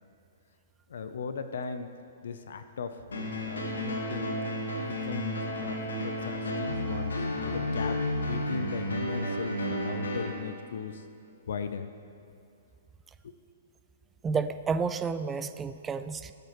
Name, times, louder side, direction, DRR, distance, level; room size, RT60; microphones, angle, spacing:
voice 1, 0.9-1.9 2.2-3.0 3.4-4.4 4.8-11.0 11.5-11.9 13.2-13.3, left 6 dB, 70° left, 10 dB, 0.6 m, -37 dB
sound 1, 3.1-10.3, equal, 90° left, 1.6 m, -32 dB
voice 2, 14.2-16.3, right 5 dB, 15° right, 11 dB, 0.4 m, -30 dB
16.0 x 7.9 x 3.1 m, 2.6 s
hypercardioid pair, 130°, 0 cm